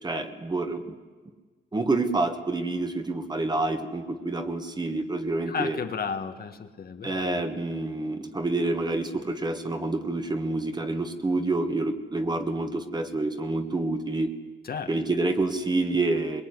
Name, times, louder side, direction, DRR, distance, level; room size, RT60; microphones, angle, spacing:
voice 1, 0.0-0.9 1.7-5.8 7.0-14.3 14.9-16.4, right 2 dB, 20° right, 7 dB, 1.7 m, -28 dB
voice 2, 5.5-7.4 14.6-14.9, left 6 dB, 50° left, 7 dB, 1.5 m, -33 dB
22.5 x 21.5 x 9.8 m, 1.4 s
wide cardioid pair, 155°, 20 cm